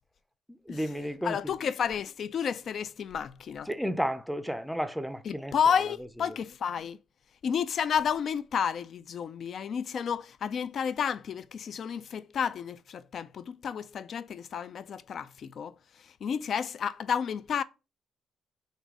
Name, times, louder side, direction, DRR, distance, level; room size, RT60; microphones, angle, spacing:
voice 1, 0.7-1.5 3.7-5.5, equal, ahead, 0.5 m, -32 dB
voice 2, 1.2-3.7 5.2-7.0 7.4-17.6, left 7 dB, 60° left, 0.3 m, -31 dB
3.9 x 2.6 x 4.6 m
cardioid pair, 90°, 0 cm